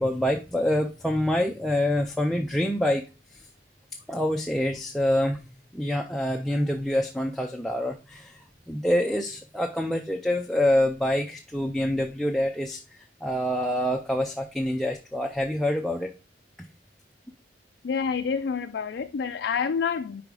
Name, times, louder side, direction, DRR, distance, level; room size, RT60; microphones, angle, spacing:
voice 1, 0.0-3.0 3.3-3.5 4.1-5.4 5.7-12.8 13.2-16.1, left 1 dB, ahead, 0.4 m, -26 dB
voice 2, 17.8-20.2, left 6 dB, 65° left, 0.4 m, -28 dB
5.2 x 4.9 x 4.7 m
head